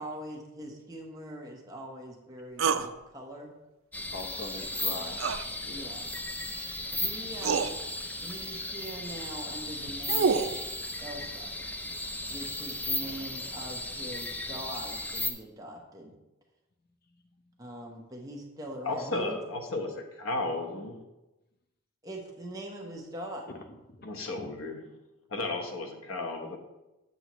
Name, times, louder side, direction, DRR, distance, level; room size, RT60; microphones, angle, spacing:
voice 1, 0.0-3.5 5.7-6.1 6.9-7.8 8.2-10.4 11.0-11.5 12.3-16.1 17.6-19.4 22.0-23.5, right 1 dB, 15° right, 1.0 m, -42 dB
sound 1, 2.6-2.9 5.2-5.5 6.8-6.9 7.4-7.7 9.7-10.6, right 5 dB, 70° right, 0.4 m, -27 dB
sound 2, 3.9-15.3, left 1 dB, 10° left, 0.4 m, -35 dB
voice 2, 4.1-5.2 5.6-5.9 13.0-13.3 23.5-24.1, left 3 dB, 45° left, 0.8 m, -42 dB
voice 3, 18.8-21.0 24.0-24.8 25.3-26.6, left 2 dB, 75° left, 1.1 m, -34 dB
8.1 x 7.0 x 3.0 m
head